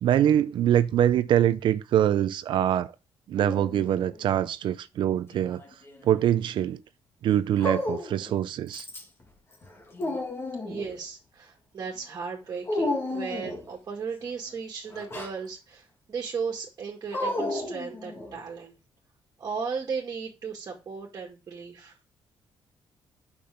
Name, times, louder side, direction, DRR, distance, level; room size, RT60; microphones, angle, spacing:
voice 1, 0.0-2.9 3.3-5.6 6.0-6.8 7.2-8.8, right 11 dB, 60° right, 0.6 m, -24 dB
Dog, 3.4-4.2 5.3-6.1 7.6-8.3 8.7-9.2 9.6-10.9 12.7-13.7 14.9-15.4 17.1-18.4, left 2 dB, 25° left, 1.8 m, -33 dB
voice 2, 10.6-18.8 19.4-22.0, right 5 dB, 35° right, 2.2 m, -36 dB
8.7 x 6.2 x 5.1 m
cardioid pair, 170°, 9 cm